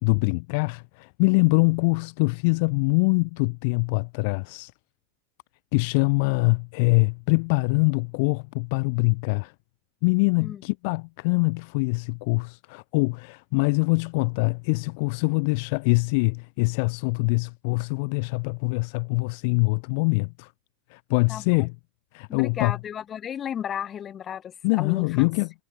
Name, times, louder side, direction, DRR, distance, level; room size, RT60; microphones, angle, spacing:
voice 1, 0.0-4.7 5.7-9.5 10.0-20.5 20.9-21.7 22.1-22.8 24.6-25.5, left 31 dB, 50° left, 2.7 m, -24 dB
voice 2, 21.3-21.7 22.3-25.3, left 9 dB, 20° left, 7.8 m, -34 dB
supercardioid pair, 170°, 0 cm